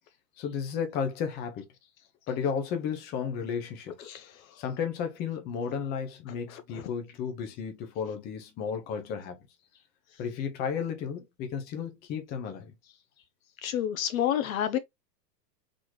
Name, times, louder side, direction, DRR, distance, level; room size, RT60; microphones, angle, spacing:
voice 1, 0.4-1.6 2.3-4.1 4.6-9.4 10.2-12.7, left 7 dB, 20° left, 0.7 m, -33 dB
voice 2, 6.5-6.8 13.6-14.8, left 10 dB, 55° left, 0.6 m, -29 dB
4.1 x 3.0 x 3.1 m
supercardioid pair, 150°, 49 cm